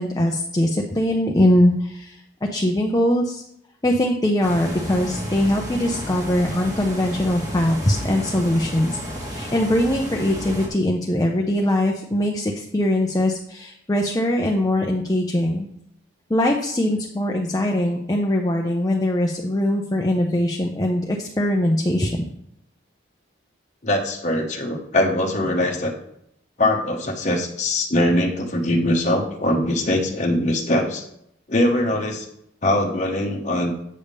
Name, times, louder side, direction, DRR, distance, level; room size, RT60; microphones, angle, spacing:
voice 1, 0.0-3.4 3.8-15.7 16.3-22.2, left 1 dB, 20° left, 1 dB, 0.5 m, -21 dB
sound 1, 4.4-10.7, equal, 20° right, 1.4 m, -32 dB
voice 2, 23.8-25.9 26.6-31.0 31.5-32.3 32.6-33.7, left 1 dB, 35° left, 0 dB, 0.9 m, -22 dB
8.4 x 3.5 x 6.6 m, 0.76 s
head